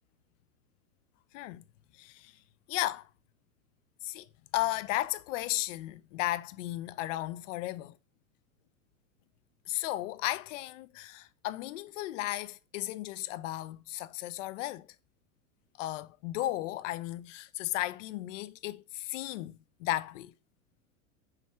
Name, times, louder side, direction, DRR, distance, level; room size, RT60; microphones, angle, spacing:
voice 1, 2.0-2.3 2.7-3.0 4.0-4.3 4.5-7.9 9.7-14.9 15.8-20.3, left 16 dB, 65° left, 0.5 m, -35 dB
5.8 x 2.2 x 3.2 m
supercardioid pair, 125°, 41 cm